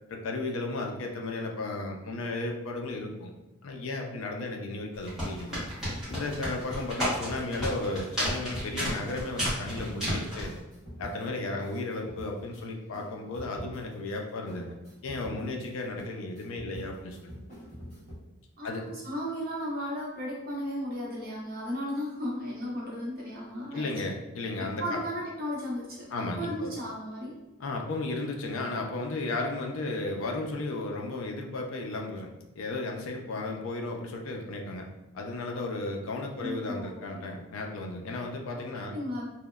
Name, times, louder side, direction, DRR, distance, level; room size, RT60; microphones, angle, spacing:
voice 1, 0.1-3.3 3.6-5.6 6.1-10.5 11.0-14.7 15.0-17.3 18.6-18.8 23.7-25.0 26.1-26.7 27.6-32.3 32.6-34.9 35.1-38.9, left 2 dB, 65° left, 2 dB, 0.4 m, -34 dB
sound 1, 4.9-10.6, equal, ahead, 0.9 m, -32 dB
sound 2, 5.2-18.1, equal, 30° left, 1.0 m, -47 dB
voice 2, 7.0-7.7 18.6-23.9 24.6-27.4 36.4-36.9 38.7-39.2, equal, 40° right, -5 dB, 0.7 m, -35 dB
2.9 x 2.0 x 2.2 m, 0.99 s
head